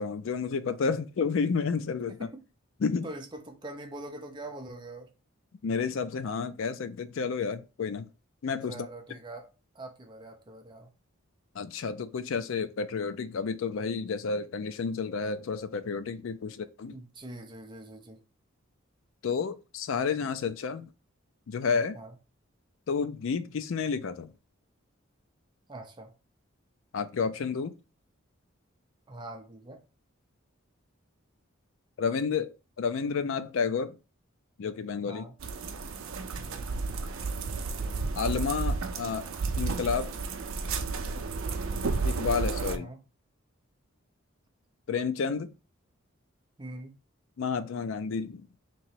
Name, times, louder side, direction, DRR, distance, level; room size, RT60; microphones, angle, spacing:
voice 1, 0.0-2.3 2.8-3.1 5.6-8.1 8.4-8.9 11.6-17.0 19.2-20.9 21.5-22.0 22.9-24.3 26.9-27.7 32.0-34.0 34.6-35.3 38.1-39.3 39.6-40.1 42.0-42.9 44.9-45.5 47.4-48.5, left 5 dB, 70° left, 0.4 m, -30 dB
voice 2, 3.0-5.1 8.7-9.5 9.7-10.9 16.4-16.6 16.9-18.2 21.9-22.2 25.7-26.1 29.1-29.8 35.1-35.4 36.4-36.7 42.7-43.0 46.6-46.9, right 2 dB, 20° right, 0.6 m, -43 dB
sound 1, 35.4-42.8, right 4 dB, 80° right, 0.5 m, -32 dB
3.0 x 2.9 x 4.5 m
head